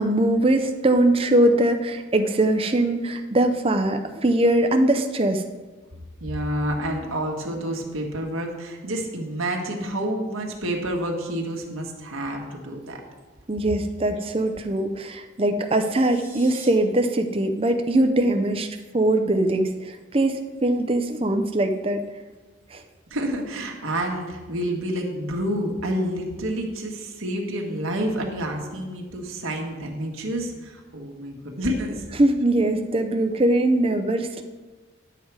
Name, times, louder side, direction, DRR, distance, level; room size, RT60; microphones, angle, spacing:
voice 1, 0.0-5.4 13.5-18.7 18.9-22.0 22.7-22.8 32.2-34.4, right 1 dB, 25° right, 6 dB, 0.5 m, -21 dB
voice 2, 6.2-13.0 23.1-32.0, right 1 dB, 85° right, 1 dB, 1.5 m, -29 dB
sound 1, 15.6-16.7, right 3 dB, 10° right, 1.4 m, -45 dB
10.0 x 7.4 x 4.7 m, 1.3 s
head